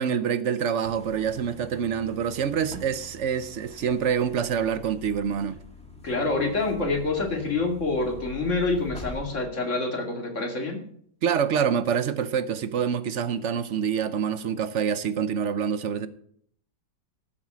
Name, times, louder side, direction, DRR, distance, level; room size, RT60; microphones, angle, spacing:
voice 1, 0.0-5.6 11.2-16.1, right 7 dB, 60° right, 0.8 m, -26 dB
sound 1, 0.8-9.2, left 1 dB, 5° left, 2.0 m, -44 dB
voice 2, 6.0-10.8, left 3 dB, 45° left, 2.6 m, -27 dB
13.5 x 7.4 x 6.2 m
omnidirectional pair, 1.8 m